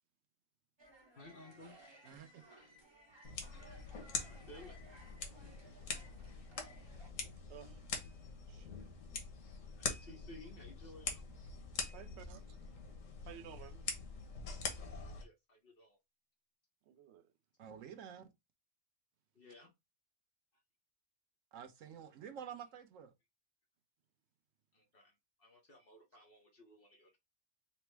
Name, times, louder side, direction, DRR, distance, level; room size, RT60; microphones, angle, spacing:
sound 1, 0.8-7.1, right 1 dB, 25° right, 0.8 m, -60 dB
voice 1, 1.2-1.7 4.1-4.8 9.8-11.5 14.8-16.0 19.3-19.7 24.7-25.1 25.4-27.2, left 1 dB, 50° left, 1.1 m, -57 dB
voice 2, 2.0-2.4 17.6-18.3 21.5-23.1, right 8 dB, 90° right, 1.1 m, -49 dB
sound 2, 3.2-15.2, left 4 dB, 85° left, 1.4 m, -44 dB
voice 3, 8.5-8.9 11.9-12.4 13.3-13.8 16.9-17.3, right 11 dB, 65° right, 0.8 m, -54 dB
4.3 x 2.0 x 4.5 m
omnidirectional pair, 1.3 m